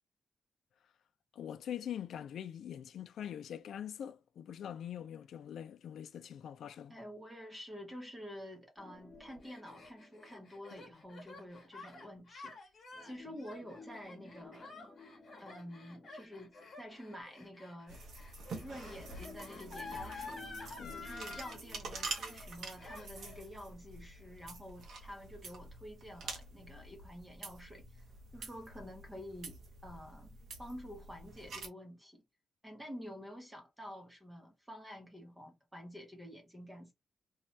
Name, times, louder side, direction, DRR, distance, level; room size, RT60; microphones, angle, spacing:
voice 1, 1.3-7.0 10.7-10.8 20.8-21.0, left 9 dB, 70° left, 0.3 m, -43 dB
voice 2, 6.9-12.6 13.0-14.8 15.4-18.1 18.6-20.5 20.9-28.0 28.3-32.2 32.6-36.9, equal, 10° right, 0.7 m, -49 dB
sound 1, 8.8-11.4 12.9-17.3 18.5-23.4 23.8-23.9 24.5-24.6, left 3 dB, 20° left, 0.9 m, -56 dB
Gasp, 9.1-21.6 21.9-22.5 22.8-23.4, left 3 dB, 45° left, 1.0 m, -50 dB
sound 2, 17.9-31.7, right 3 dB, 65° right, 0.7 m, -47 dB
2.6 x 2.2 x 3.0 m
wide cardioid pair, 170°, 0 cm